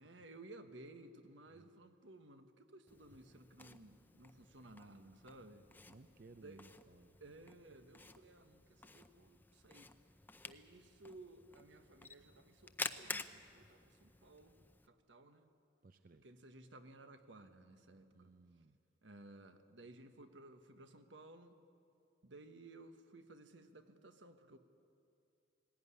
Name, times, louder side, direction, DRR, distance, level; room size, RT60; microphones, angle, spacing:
voice 1, 0.0-5.7 6.4-6.6 7.2-10.0 10.4-14.6 14.9-15.5 16.2-18.3 19.0-21.5 22.2-24.6, right 2 dB, 75° right, 8 dB, 1.4 m, -57 dB
Camera, 2.9-14.9, left 3 dB, 10° left, 0.6 m, -51 dB
voice 2, 5.8-7.2 15.8-16.2 18.1-18.8, right 3 dB, 50° right, 9 dB, 0.6 m, -60 dB
19.0 x 16.0 x 9.9 m, 2.6 s
head